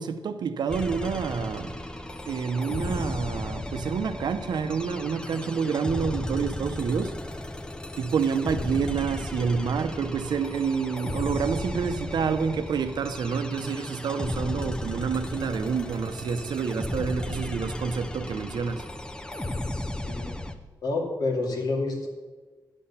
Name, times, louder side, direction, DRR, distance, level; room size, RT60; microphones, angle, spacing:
voice 1, 0.0-1.7 2.3-7.1 8.0-18.9, right 6 dB, 75° right, 0.7 m, -28 dB
sound 1, 0.7-20.5, left 1 dB, 10° left, 0.6 m, -34 dB
voice 2, 20.0-20.4 20.8-22.1, left 3 dB, 60° left, 2.4 m, -28 dB
9.9 x 8.6 x 5.7 m
wide cardioid pair, 160°, 7 cm